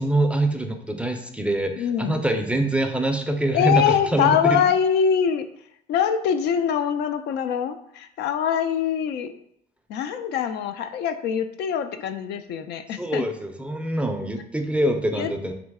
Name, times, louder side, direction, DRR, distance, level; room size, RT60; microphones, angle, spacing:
voice 1, 0.0-4.7 13.0-15.5, right 1 dB, 5° right, 4 dB, 0.4 m, -24 dB
voice 2, 1.8-2.2 3.5-5.5 5.9-9.3 9.9-13.3 15.2-15.3, left 8 dB, 75° left, 9 dB, 0.4 m, -23 dB
3.8 x 3.2 x 3.5 m, 0.74 s
cardioid pair, 110°, 17 cm